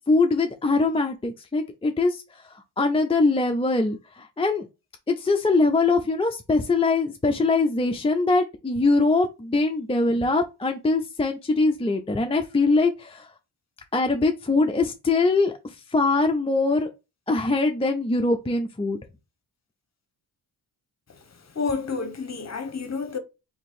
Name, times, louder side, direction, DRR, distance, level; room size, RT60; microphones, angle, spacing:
voice 1, 0.1-4.7 5.1-13.3 13.9-16.9 17.3-19.0, left 3 dB, 15° left, 0.5 m, -22 dB
voice 2, 21.5-23.2, left 4 dB, 35° left, 1.0 m, -29 dB
2.9 x 2.7 x 4.2 m
cardioid pair, 75°, 44 cm